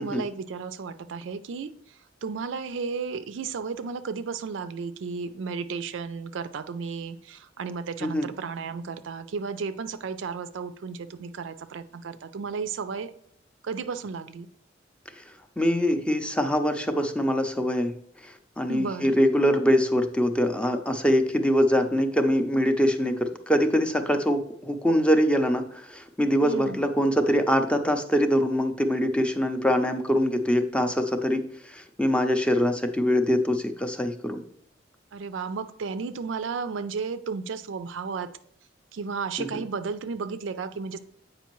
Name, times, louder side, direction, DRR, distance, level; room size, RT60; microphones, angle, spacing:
voice 1, 0.0-13.1 13.6-14.5 18.7-19.2 26.4-26.8 35.1-38.3 38.9-41.0, right 5 dB, 70° right, 12 dB, 0.4 m, -33 dB
voice 2, 15.6-17.9 18.2-34.4 39.4-39.5, equal, 5° left, 6 dB, 0.5 m, -24 dB
8.2 x 5.1 x 3.0 m, 0.67 s
head